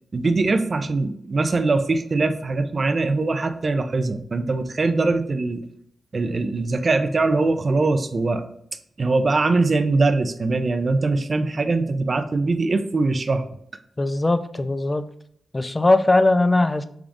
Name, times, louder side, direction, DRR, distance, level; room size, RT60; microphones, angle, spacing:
voice 1, 0.1-5.6 6.1-8.4 9.0-13.4, right 3 dB, 50° right, 10 dB, 0.4 m, -22 dB
voice 2, 14.0-15.0 15.5-16.9, left 2 dB, 30° left, 11 dB, 0.3 m, -19 dB
3.6 x 3.4 x 2.5 m, 0.69 s
cardioid pair, 50°, 0 cm